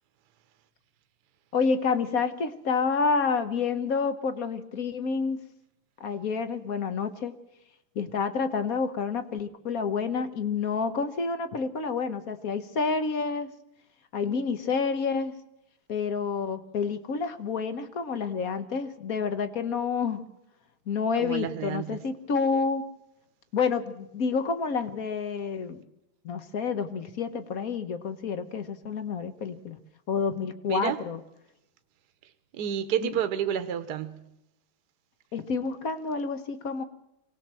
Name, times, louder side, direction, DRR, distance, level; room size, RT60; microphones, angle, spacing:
voice 1, 1.5-5.4 6.0-7.3 7.9-13.5 14.1-15.3 15.9-20.2 20.9-22.8 23.5-25.8 26.2-29.8 30.1-31.2 33.0-33.2 35.3-36.8, left 5 dB, 50° left, 1.3 m, -29 dB
voice 2, 21.2-22.0 30.7-31.0 32.5-34.3, right 10 dB, 55° right, 1.4 m, -30 dB
24.0 x 18.0 x 7.5 m
omnidirectional pair, 2.4 m